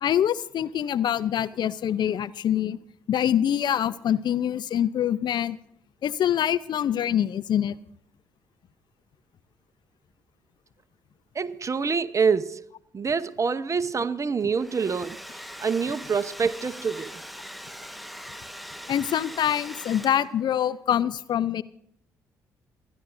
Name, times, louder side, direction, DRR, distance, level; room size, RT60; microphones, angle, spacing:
voice 1, 0.0-2.8 3.1-5.6 6.0-7.8 18.9-21.6, left 10 dB, 55° left, 0.5 m, -25 dB
voice 2, 11.4-12.6 12.9-15.2 15.6-17.1, right 5 dB, 35° right, 0.9 m, -26 dB
Domestic sounds home sounds, 14.4-20.5, equal, ahead, 1.3 m, -41 dB
28.5 x 11.0 x 2.6 m
hypercardioid pair, 45°, 9 cm